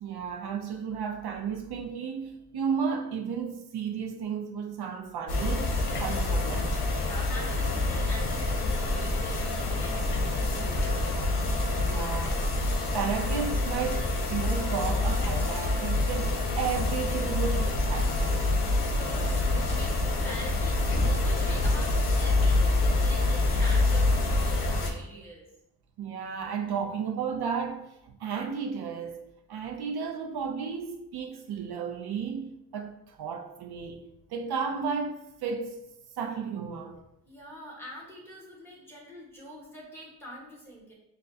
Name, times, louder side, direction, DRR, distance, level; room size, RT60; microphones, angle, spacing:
voice 1, 0.0-6.8 11.6-12.4 12.9-18.5 26.0-29.2 29.5-34.0 34.3-37.0, right 6 dB, 75° right, 0.6 m, -33 dB
sound 1, 5.3-24.9, left 2 dB, 80° left, 0.8 m, -26 dB
voice 2, 7.0-11.2 18.9-25.5 37.3-40.9, equal, 5° left, 1.3 m, -45 dB
6.3 x 2.1 x 2.7 m
wide cardioid pair, 95°, 39 cm